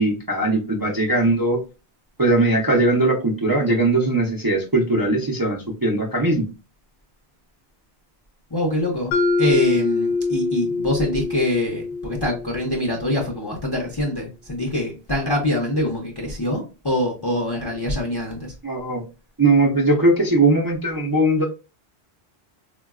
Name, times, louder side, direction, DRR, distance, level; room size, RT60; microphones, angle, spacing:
voice 1, 0.0-1.6 2.2-6.4 18.6-19.0 19.4-21.4, right 2 dB, 30° right, 0.4 m, -19 dB
voice 2, 8.5-9.1 9.4-18.5, left 1 dB, 30° left, 0.5 m, -24 dB
Mallet percussion, 9.1-13.1, left 3 dB, 70° left, 0.8 m, -24 dB
3.8 x 2.2 x 2.3 m
omnidirectional pair, 1.1 m